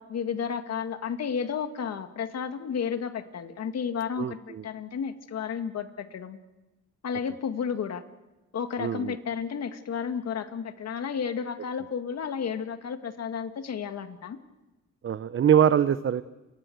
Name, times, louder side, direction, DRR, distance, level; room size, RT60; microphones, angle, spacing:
voice 1, 0.0-6.4 7.0-8.0 8.5-14.4, left 7 dB, 55° left, 8 dB, 2.0 m, -32 dB
voice 2, 4.2-4.6 8.8-9.2 15.0-16.2, right 9 dB, 45° right, 13 dB, 0.8 m, -23 dB
28.5 x 23.5 x 7.9 m, 1.1 s
cardioid pair, 90°, 30 cm